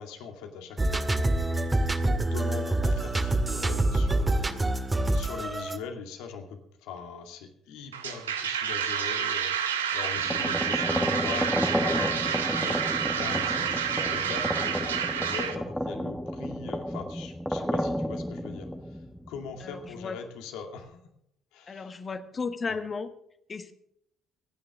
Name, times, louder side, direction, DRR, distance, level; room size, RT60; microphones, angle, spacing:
voice 1, 0.0-4.8 5.1-18.7 19.3-21.0 21.5-22.3 22.7-22.8, left 6 dB, 70° left, 5 dB, 2.2 m, -41 dB
sound 1, 0.8-5.8, right 2 dB, 20° right, 1.8 m, -26 dB
sound 2, 7.9-15.6, right 8 dB, 85° right, 1.1 m, -29 dB
sound 3, 10.1-19.9, equal, 5° left, 1.5 m, -32 dB
voice 2, 19.6-20.2 21.7-23.1 23.5-23.7, left 4 dB, 35° left, 9 dB, 1.6 m, -34 dB
25.5 x 9.7 x 3.6 m, 0.75 s
hypercardioid pair, 50°, 0 cm